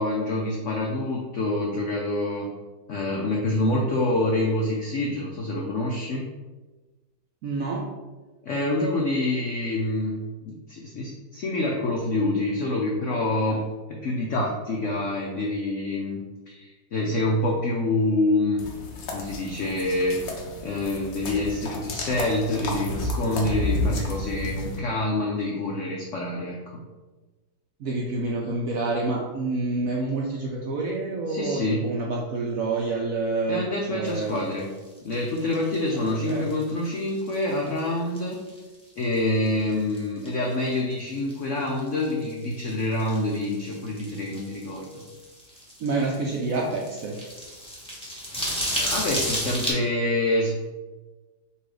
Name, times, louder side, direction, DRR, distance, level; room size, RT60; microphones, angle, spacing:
voice 1, 0.0-2.5 2.9-6.2 8.4-10.2 10.5-13.6 13.9-18.6 19.1-20.2 20.6-26.8 31.3-31.8 33.5-34.7 35.0-38.4 39.0-45.0 48.8-50.5, left 2 dB, 80° left, -1 dB, 0.6 m, -26 dB
voice 2, 7.4-7.8 27.8-34.4 35.9-36.5 45.8-47.2, right 3 dB, 70° right, -2 dB, 0.8 m, -28 dB
sound 1, 18.6-24.8, left 2 dB, 60° left, 1.0 m, -31 dB
sound 2, 34.1-37.8 38.1-38.7 39.0-39.2 39.4-41.4 41.7-49.7, equal, 5° left, 0.8 m, -33 dB
4.1 x 2.7 x 4.8 m, 1.2 s
omnidirectional pair, 2.1 m